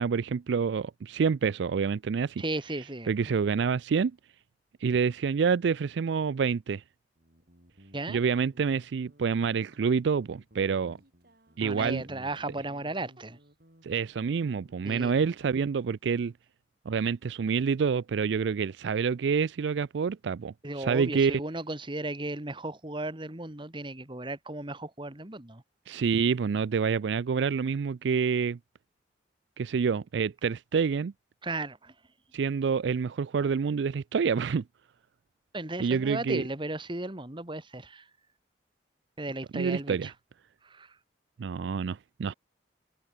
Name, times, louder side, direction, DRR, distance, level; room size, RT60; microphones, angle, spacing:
voice 1, 0.0-2.4 3.1-4.1 4.8-6.8 8.1-11.0 11.6-12.0 13.8-16.3 16.9-21.4 25.9-28.6 29.6-31.1 32.3-34.6 35.8-36.4 39.5-40.1 41.4-42.3, right 6 dB, 70° right, 0.4 m, -27 dB
voice 2, 2.4-3.4 7.9-8.2 11.6-13.4 14.8-15.2 20.6-25.6 31.4-31.9 35.5-38.1 39.2-40.1 40.6-41.0, right 2 dB, 25° right, 1.8 m, -35 dB
Guitar, 7.2-15.6, equal, 55° right, 5.6 m, -56 dB
head